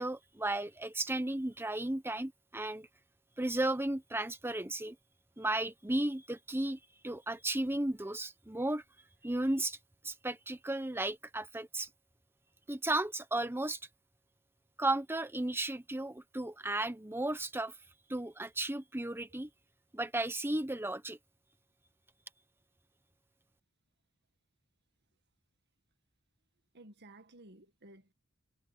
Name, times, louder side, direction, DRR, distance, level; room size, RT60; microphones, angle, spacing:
voice 1, 0.0-2.9 3.4-4.9 5.4-8.8 9.2-9.8 10.0-11.9 12.7-13.8 14.8-17.7 18.1-19.5 19.9-21.2, right 1 dB, 10° right, 1.1 m, -34 dB
voice 2, 26.7-28.1, right 2 dB, 50° right, 1.8 m, -55 dB
head